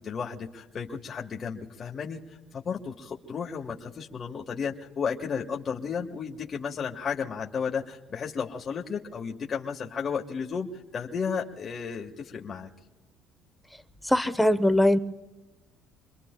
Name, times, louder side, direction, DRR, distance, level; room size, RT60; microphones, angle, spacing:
voice 1, 0.0-2.2 2.5-12.7, left 6 dB, 40° left, 0 dB, 1.4 m, -33 dB
voice 2, 14.0-15.0, left 1 dB, 5° left, 11 dB, 0.8 m, -21 dB
27.5 x 22.5 x 2.2 m, 1.1 s
cardioid pair, 105°, 0 cm